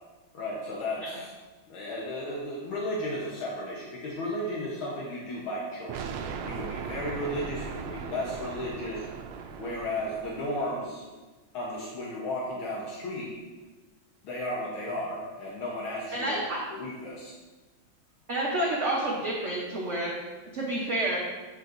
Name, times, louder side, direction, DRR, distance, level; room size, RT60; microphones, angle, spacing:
voice 1, 0.3-1.3 1.7-6.1 6.4-9.1 9.6-11.0 11.5-13.3 14.2-16.4 16.7-17.3, left 1 dB, 75° left, -4 dB, 1.8 m, -34 dB
sound 1, 5.9-10.8, right 6 dB, 80° right, 1.4 m, -38 dB
voice 2, 16.1-16.6 18.3-20.1 20.5-21.2, right 1 dB, 50° right, -4 dB, 0.9 m, -29 dB
8.6 x 5.8 x 2.6 m, 1.3 s
omnidirectional pair, 2.3 m